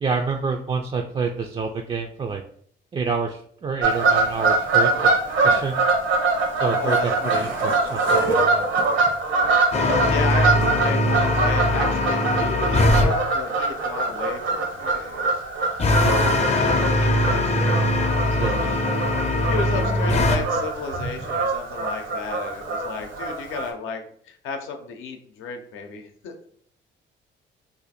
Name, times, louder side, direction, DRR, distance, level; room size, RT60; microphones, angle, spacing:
voice 1, 0.0-2.4 2.9-5.8 6.6-8.7 16.0-16.4 18.3-18.8, right 4 dB, 30° right, 2 dB, 0.3 m, -28 dB
Fowl / Bird vocalization bird call bird song, 3.8-23.7, right 3 dB, 75° right, 0.9 m, -24 dB
voice 2, 6.8-7.4 9.7-18.9 19.5-26.4, left 5 dB, 85° left, 4 dB, 0.6 m, -33 dB
sound 1, 9.7-13.1 15.8-20.4, left 1 dB, 35° left, 0.5 m, -21 dB
2.7 x 2.4 x 4.1 m, 0.62 s
cardioid pair, 90°, 20 cm